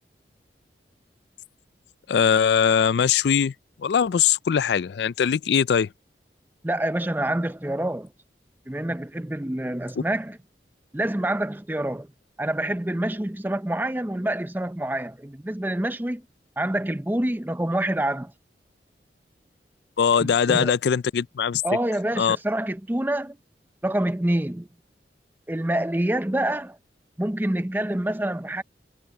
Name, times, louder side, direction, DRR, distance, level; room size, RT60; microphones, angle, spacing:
voice 1, 2.1-3.5 3.8-5.9 20.0-21.6 22.2-22.4, left 7 dB, 70° left, 0.4 m, -21 dB
voice 2, 6.6-8.1 8.7-10.4 10.9-12.1 12.4-16.2 16.6-18.3 20.2-20.7 21.6-23.4 23.8-24.7 25.5-26.8 27.2-28.6, right 1 dB, 10° right, 0.5 m, -26 dB
head